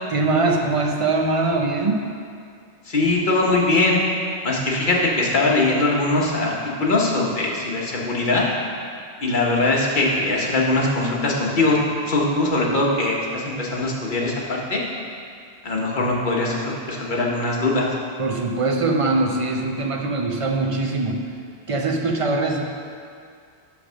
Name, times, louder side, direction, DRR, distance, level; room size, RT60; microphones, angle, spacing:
voice 1, 0.1-2.0 18.2-21.2 21.7-22.6, right 3 dB, 35° right, 1 dB, 0.7 m, -22 dB
voice 2, 2.9-4.0 4.4-6.5 6.8-8.4 9.2-11.8 12.1-14.8 15.6-17.9, left 2 dB, 50° left, -3 dB, 1.3 m, -21 dB
10.0 x 3.5 x 6.2 m, 2.2 s
omnidirectional pair, 1.1 m